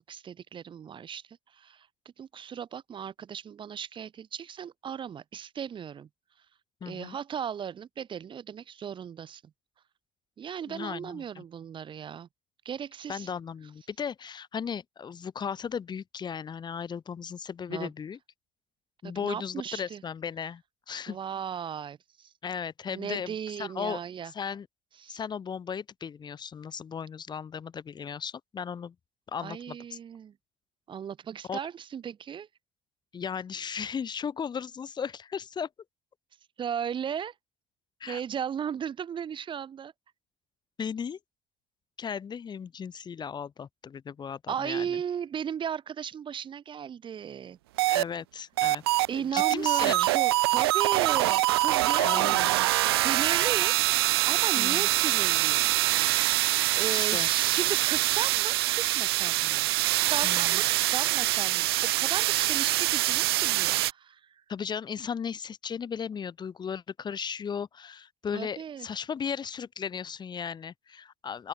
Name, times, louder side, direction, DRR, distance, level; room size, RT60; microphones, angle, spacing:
voice 1, 0.1-1.9 2.2-6.1 6.9-9.4 10.4-12.3 12.6-13.3 17.7-17.9 19.0-20.0 21.1-22.3 22.9-24.3 25.0-25.2 29.4-30.3 30.9-32.5 36.6-37.3 38.1-39.9 44.5-47.6 49.1-52.5 52.8-53.8 54.3-55.7 56.8-64.4 68.3-68.9, right 8 dB, 40° right, 2.6 m, -36 dB
voice 2, 6.8-7.2 10.7-11.4 13.1-18.2 19.0-21.2 22.4-24.0 24.3-24.7 25.1-28.9 29.3-30.0 31.5-31.6 33.1-35.7 38.0-38.2 40.8-41.2 42.0-45.0 47.9-48.8 49.1-50.1 52.0-52.7 54.5-54.9 56.9-57.3 60.2-60.6 64.5-71.5, left 7 dB, 35° left, 3.1 m, -36 dB
sound 1, 47.8-48.0 48.6-49.1 49.4-63.9, right 17 dB, 80° right, 1.1 m, -24 dB
open air
hypercardioid pair, 70°, 13 cm